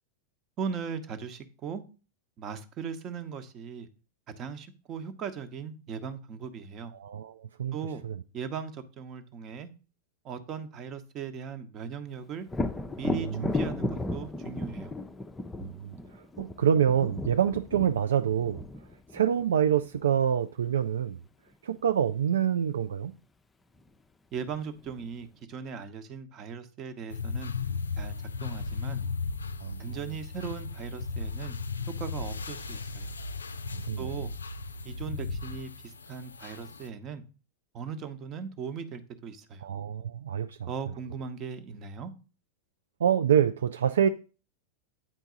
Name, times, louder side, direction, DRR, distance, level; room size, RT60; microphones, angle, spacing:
voice 1, 0.6-1.8 2.4-3.9 4.4-6.9 7.7-8.0 8.3-9.7 10.2-12.5 13.0-14.9 24.3-27.5 28.0-29.0 29.8-31.6 32.0-33.1 34.0-34.3 34.8-37.2 37.7-39.7 40.7-42.1, right 6 dB, 35° right, 1.0 m, -38 dB
voice 2, 6.9-7.8 8.0-8.1 13.2-13.5 15.6-15.9 16.4-18.6 19.1-21.2 21.6-23.1 29.6-30.0 33.7-34.1 39.6-40.7 43.0-44.1, right 9 dB, 65° right, 0.3 m, -26 dB
Thunder, 12.5-20.2 23.8-23.9 24.4-25.3, left 2 dB, 10° left, 0.6 m, -35 dB
sound 1, 27.1-36.9, left 4 dB, 75° left, 0.5 m, -36 dB
9.0 x 4.5 x 4.0 m
figure-of-eight pair, 90°, 0 cm